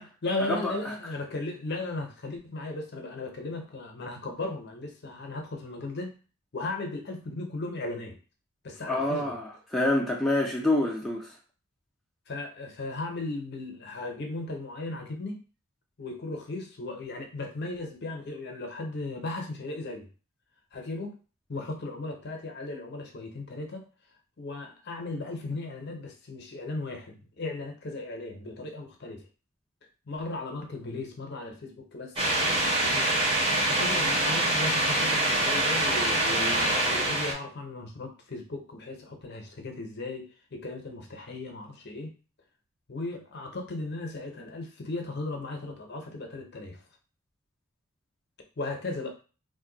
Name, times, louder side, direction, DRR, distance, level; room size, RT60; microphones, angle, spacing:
voice 1, 0.0-6.1 6.5-8.2 8.6-9.3 12.3-15.4 16.0-20.1 20.7-21.1 21.5-23.9 24.4-29.2 30.1-33.1 33.6-42.1 42.9-46.8 48.6-49.2, left 2 dB, 50° left, 0.6 m, -36 dB
voice 2, 8.9-11.3, left 1 dB, ahead, 0.4 m, -27 dB
sound 1, 32.2-37.3, right 1 dB, 25° right, 0.8 m, -25 dB
2.6 x 2.2 x 3.8 m
head